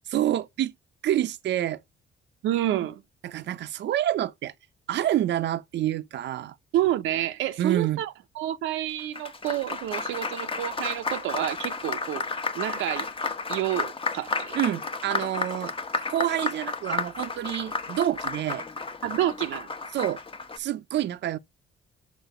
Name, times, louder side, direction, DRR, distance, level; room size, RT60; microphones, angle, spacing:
voice 1, 0.1-0.7 1.0-1.8 3.2-4.5 4.9-6.6 7.6-8.0 14.5-15.7 16.1-18.6 19.9-20.2 20.6-21.4, right 12 dB, 60° right, 0.6 m, -27 dB
voice 2, 2.4-3.0 6.7-12.2 12.5-13.1 13.5-14.6 19.0-19.7, right 13 dB, 90° right, 0.8 m, -29 dB
Applause, 8.9-20.6, left 3 dB, 25° left, 1.0 m, -32 dB
6.3 x 4.5 x 6.6 m
cardioid pair, 90°, 20 cm